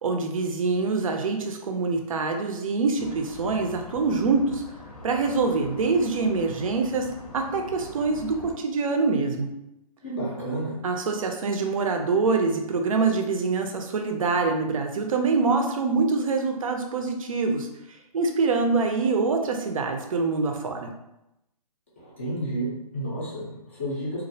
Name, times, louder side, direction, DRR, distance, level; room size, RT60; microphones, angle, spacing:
voice 1, 0.0-4.6 5.0-7.1 7.3-9.5 10.8-17.7 18.1-20.9, right 4 dB, 60° right, 4 dB, 0.4 m, -25 dB
sound 1, 3.0-8.5, left 2 dB, 70° left, 0.7 m, -43 dB
voice 2, 10.0-10.8 22.0-24.2, right 1 dB, 20° left, -6 dB, 0.4 m, -31 dB
2.3 x 2.0 x 2.6 m, 0.88 s
hypercardioid pair, 170°, 20 cm